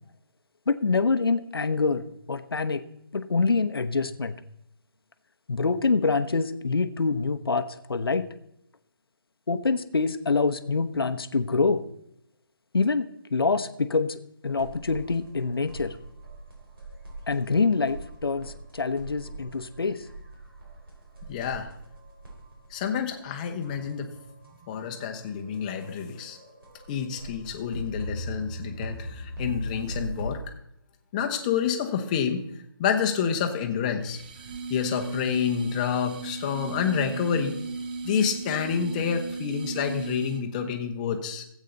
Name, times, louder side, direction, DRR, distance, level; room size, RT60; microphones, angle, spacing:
voice 1, 0.7-2.8 3.1-4.4 5.5-8.3 9.5-11.8 12.7-13.0 13.3-16.0 17.3-20.1, left 4 dB, 85° left, 11 dB, 0.8 m, -25 dB
sound 1, 14.5-30.3, right 1 dB, 70° right, 4.1 m, -40 dB
voice 2, 21.3-21.7 22.7-24.1 24.7-26.4 26.9-30.4 31.1-32.4 32.8-34.2 34.7-37.6 38.0-41.4, left 7 dB, 20° left, 5 dB, 0.9 m, -28 dB
sound 2, 34.0-40.6, right 4 dB, 25° right, 0.5 m, -36 dB
13.5 x 8.3 x 3.9 m, 0.77 s
figure-of-eight pair, 160°, 12 cm